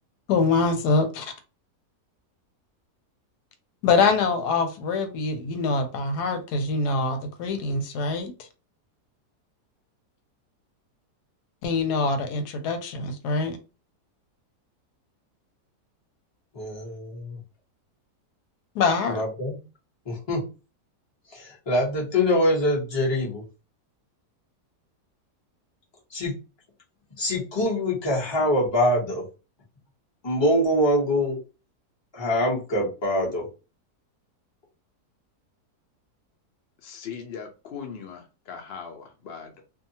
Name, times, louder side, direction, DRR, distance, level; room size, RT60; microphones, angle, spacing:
voice 1, 0.3-1.3 3.8-8.5 11.6-13.6 18.7-19.2, left 4 dB, 85° left, 1.2 m, -24 dB
voice 2, 16.5-17.4 19.1-19.6 20.0-20.4 21.3-23.4 26.1-26.3 27.2-29.2 30.2-31.4 32.1-33.5, left 1 dB, 20° left, 0.9 m, -24 dB
voice 3, 36.8-39.6, left 6 dB, 60° left, 0.6 m, -39 dB
2.7 x 2.3 x 2.7 m
omnidirectional pair, 1.7 m